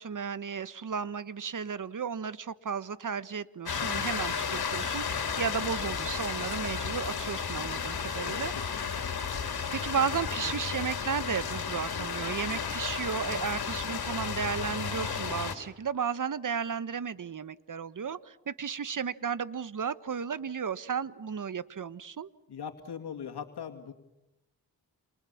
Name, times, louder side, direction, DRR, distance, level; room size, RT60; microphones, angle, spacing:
voice 1, 0.0-8.9 9.7-22.3, right 6 dB, 50° right, 16 dB, 1.3 m, -34 dB
sound 1, 3.7-15.6, left 6 dB, 70° left, 3.6 m, -33 dB
voice 2, 8.2-8.9 22.5-23.9, left 7 dB, 85° left, 4 dB, 2.7 m, -41 dB
29.5 x 28.0 x 7.2 m, 0.90 s
cardioid pair, 65°, 39 cm